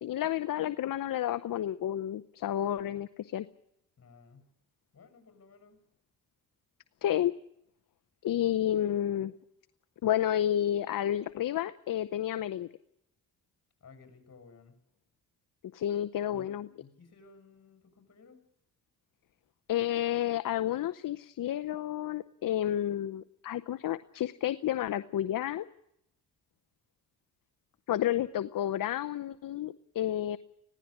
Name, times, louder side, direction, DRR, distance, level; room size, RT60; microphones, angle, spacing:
voice 1, 0.0-3.5 7.0-7.3 8.2-9.3 10.0-12.7 15.7-16.7 19.7-25.6 27.9-30.4, left 11 dB, 70° left, 13 dB, 0.8 m, -31 dB
voice 2, 4.0-4.5 4.9-5.8 13.8-14.7 16.3-16.5 16.8-18.4, left 4 dB, 45° left, 7 dB, 6.8 m, -56 dB
20.0 x 16.5 x 10.0 m, 0.77 s
cardioid pair, 70°, 35 cm